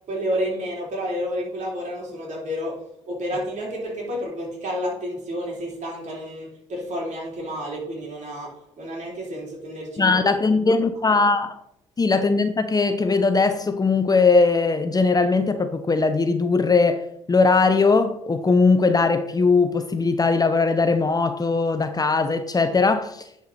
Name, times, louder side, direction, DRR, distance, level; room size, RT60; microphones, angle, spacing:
voice 1, 0.1-10.2, equal, 50° right, 3.8 m, -30 dB
voice 2, 10.0-11.6 12.0-23.3, left 4 dB, 25° left, 0.8 m, -20 dB
10.5 x 4.9 x 4.3 m
hypercardioid pair, 50°, 15 cm